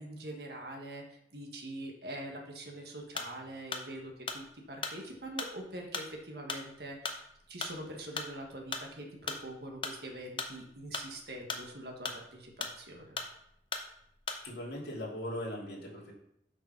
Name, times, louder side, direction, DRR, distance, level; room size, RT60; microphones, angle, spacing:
voice 1, 0.0-13.2, right 1 dB, 60° right, 1 dB, 1.5 m, -44 dB
sound 1, 3.1-14.7, left 4 dB, 30° left, 0.8 m, -39 dB
voice 2, 14.4-16.1, left 1 dB, 65° left, -5 dB, 2.9 m, -39 dB
7.4 x 5.3 x 5.9 m, 0.75 s
head